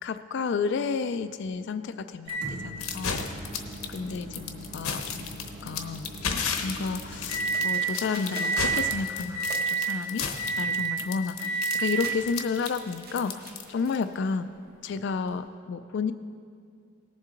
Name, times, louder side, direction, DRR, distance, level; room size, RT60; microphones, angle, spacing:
voice 1, 0.0-3.2 3.9-10.3 10.6-14.5 14.8-16.1, left 5 dB, 55° left, 10 dB, 0.3 m, -31 dB
Microwave oven, 2.3-7.9 8.3-8.9 9.3-10.0 10.4-11.0 11.4-12.2 13.2-13.3 15.3-15.4, right 4 dB, 80° right, 2.6 m, -31 dB
sound 1, 2.8-14.0, left 6 dB, 85° left, 0.9 m, -33 dB
sound 2, 7.0-14.4, right 2 dB, 45° right, 1.3 m, -46 dB
18.5 x 7.4 x 3.8 m, 2.4 s
head